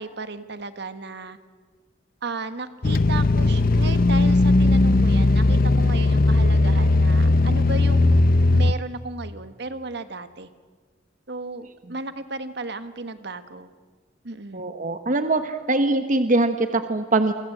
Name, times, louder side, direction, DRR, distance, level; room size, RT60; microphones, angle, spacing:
voice 1, 0.0-1.4 2.2-8.2 8.5-10.5 11.3-13.7 14.2-14.7, right 3 dB, 65° right, 10 dB, 1.6 m, -34 dB
sound 1, 2.8-8.7, left 2 dB, 50° left, 0.8 m, -18 dB
voice 2, 14.5-17.3, right 2 dB, 45° right, 8 dB, 1.2 m, -22 dB
29.5 x 24.0 x 8.0 m, 1.4 s
head